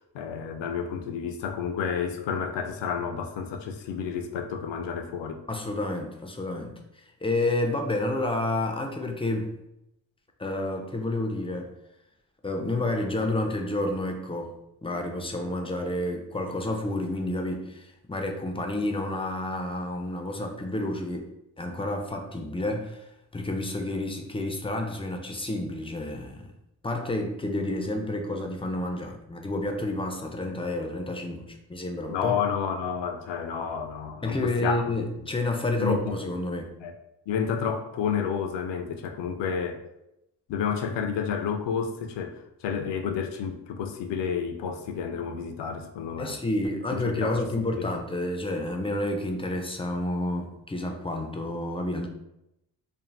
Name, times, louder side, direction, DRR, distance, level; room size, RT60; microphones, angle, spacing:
voice 1, 0.1-5.4 32.1-34.8 35.8-36.2 36.8-36.9 37.3-39.8 40.5-46.4 46.9-47.4 47.7-48.0, left 7 dB, 70° left, 6 dB, 0.5 m, -30 dB
voice 2, 5.5-6.8 7.2-9.5 10.4-11.7 12.4-14.5 14.8-21.3 21.6-23.0 23.3-26.5 26.8-32.4 34.2-36.7 46.2-52.1, left 2 dB, 15° left, 3 dB, 0.4 m, -30 dB
2.6 x 2.0 x 3.1 m, 0.85 s
supercardioid pair, 55°, 44 cm